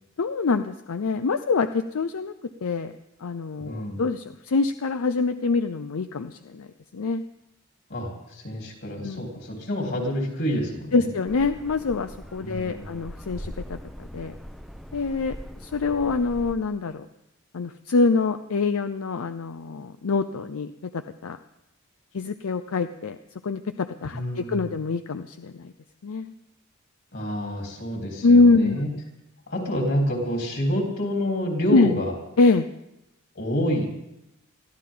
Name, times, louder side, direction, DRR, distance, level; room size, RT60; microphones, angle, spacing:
voice 1, 0.2-2.3 2.6-2.9 3.2-6.7 6.9-7.2 9.0-9.2 10.9-13.8 14.1-14.3 14.9-15.4 15.6-17.1 17.5-21.4 22.1-23.2 23.4-25.7 26.0-26.3 28.2-28.8 31.7-32.0 32.4-32.7, left 3 dB, 80° left, 10 dB, 0.6 m, -24 dB
voice 2, 3.7-4.0 7.9-11.1 12.4-13.0 24.1-24.7 27.1-28.9 29.5-32.2 33.3-33.9, equal, 55° left, 0 dB, 3.9 m, -28 dB
sound 1, 11.3-16.5, equal, ahead, 0.7 m, -40 dB
22.0 x 14.0 x 3.9 m, 0.89 s
head